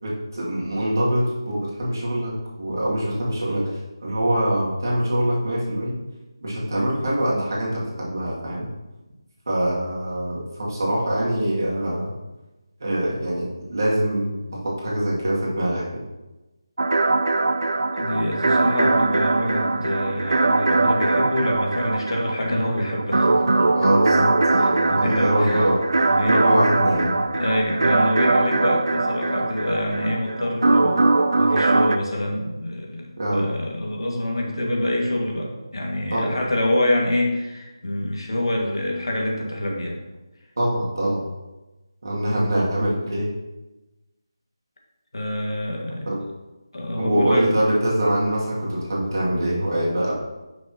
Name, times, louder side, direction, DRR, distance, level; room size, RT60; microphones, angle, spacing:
voice 1, 0.0-3.7 4.0-6.0 6.4-8.7 9.5-12.1 12.8-14.3 14.6-16.0 23.7-25.8 26.3-27.2 33.2-33.5 36.1-36.3 40.6-41.2 42.0-43.3 46.1-46.2 47.0-50.1, right 1 dB, 45° right, -6 dB, 2.3 m, -23 dB
sound 1, 16.8-32.0, right 3 dB, 70° right, 0.5 m, -21 dB
voice 2, 17.9-23.7 24.6-25.6 26.1-26.4 27.3-40.0 45.1-46.1 46.7-47.5, left 1 dB, 75° left, -1 dB, 1.9 m, -26 dB
8.6 x 6.0 x 2.9 m, 1.1 s
figure-of-eight pair, 175°, 3 cm